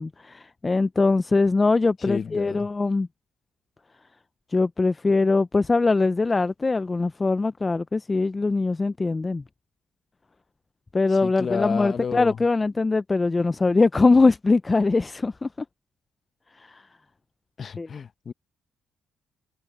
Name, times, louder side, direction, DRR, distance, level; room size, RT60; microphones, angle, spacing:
voice 1, 0.0-3.1 4.5-9.4 10.9-15.5 16.7-16.8 17.8-17.9, left 3 dB, 25° left, 0.4 m, -22 dB
voice 2, 2.0-2.7 11.2-12.4 17.6-18.3, left 6 dB, 45° left, 0.8 m, -31 dB
cardioid pair, 90°, 0 cm